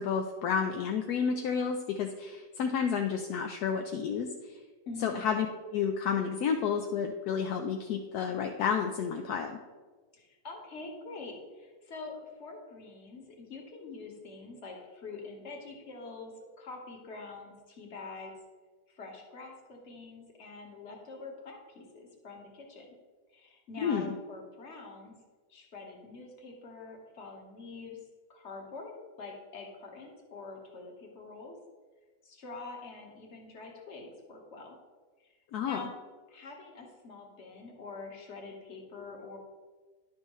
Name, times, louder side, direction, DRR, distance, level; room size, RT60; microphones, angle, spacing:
voice 1, 0.0-4.6 5.0-5.5 5.7-9.6 23.8-24.1 35.5-35.8, left 6 dB, 75° left, 4 dB, 1.1 m, -31 dB
voice 2, 4.8-5.2 10.1-18.3 18.9-22.9 23.3-25.1 25.5-28.0 28.3-31.5 32.2-34.7 35.2-35.3 35.6-35.9 36.3-39.4, left 3 dB, 45° left, 1 dB, 1.5 m, -45 dB
11.0 x 6.3 x 3.1 m, 1.4 s
omnidirectional pair, 1.8 m